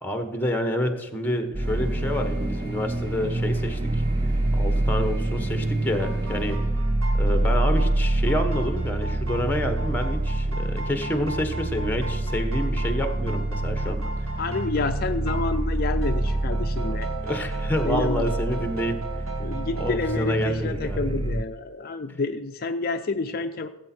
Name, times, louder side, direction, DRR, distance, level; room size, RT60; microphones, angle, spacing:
voice 1, 0.0-3.8 4.5-6.7 7.1-14.0 16.8-16.9 17.2-19.0 19.8-21.2, left 1 dB, 10° left, 7 dB, 1.2 m, -28 dB
sound 1, 1.5-21.4, right 2 dB, 25° right, 0.4 m, -26 dB
sound 2, 1.6-6.6, right 2 dB, 45° right, 1.9 m, -38 dB
sound 3, 6.0-20.4, right 2 dB, 75° right, 2.6 m, -39 dB
voice 2, 14.4-17.1 17.8-18.3 19.4-23.7, left 3 dB, 45° left, 7 dB, 0.5 m, -29 dB
17.0 x 8.2 x 4.4 m, 1.2 s
head